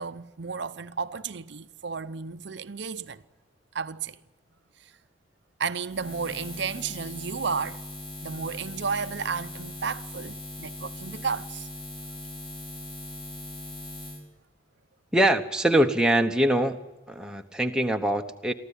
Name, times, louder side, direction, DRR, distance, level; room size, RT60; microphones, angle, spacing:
voice 1, 0.0-3.2 3.7-4.2 5.6-7.8 8.2-11.7, right 5 dB, 60° right, 0.7 m, -32 dB
Buzz, 5.9-14.2, left 1 dB, 25° left, 4.6 m, -40 dB
voice 2, 15.1-16.8 17.1-18.5, right 1 dB, 5° right, 1.0 m, -23 dB
23.0 x 15.0 x 10.0 m
head